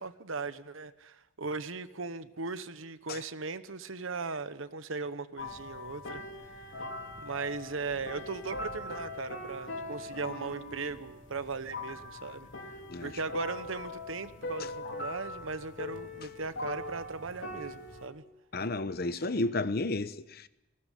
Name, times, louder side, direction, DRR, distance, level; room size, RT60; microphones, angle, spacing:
voice 1, 0.0-6.2 7.2-12.5 13.0-18.2, right 4 dB, 75° right, 1.1 m, -38 dB
sound 1, 5.4-18.1, left 2 dB, 65° left, 3.3 m, -41 dB
voice 2, 18.5-20.5, left 2 dB, 50° left, 0.8 m, -32 dB
20.5 x 17.0 x 8.4 m
head